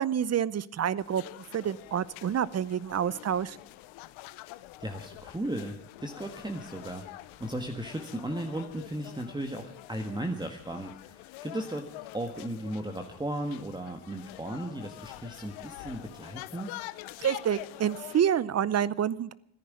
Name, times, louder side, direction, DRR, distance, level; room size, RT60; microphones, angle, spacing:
voice 1, 0.0-3.6 17.2-19.3, right 9 dB, 35° right, 20 dB, 0.7 m, -28 dB
sound 1, 1.0-18.2, left 17 dB, 85° left, 0.9 m, -46 dB
voice 2, 4.8-16.7, right 1 dB, 10° right, 4 dB, 1.6 m, -36 dB
14.0 x 10.5 x 9.5 m, 0.74 s
cardioid pair, 105°, 46 cm